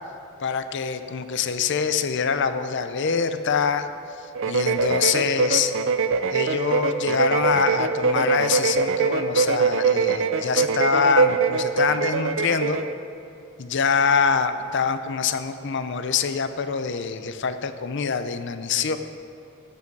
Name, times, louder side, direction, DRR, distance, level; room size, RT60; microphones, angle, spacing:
voice 1, 0.4-3.9 4.5-5.7 6.3-12.8 13.6-19.0, left 6 dB, 55° left, 10 dB, 0.5 m, -24 dB
sound 1, 4.4-12.9, right 5 dB, 60° right, 0.5 m, -23 dB
14.0 x 8.5 x 4.6 m, 2.8 s
head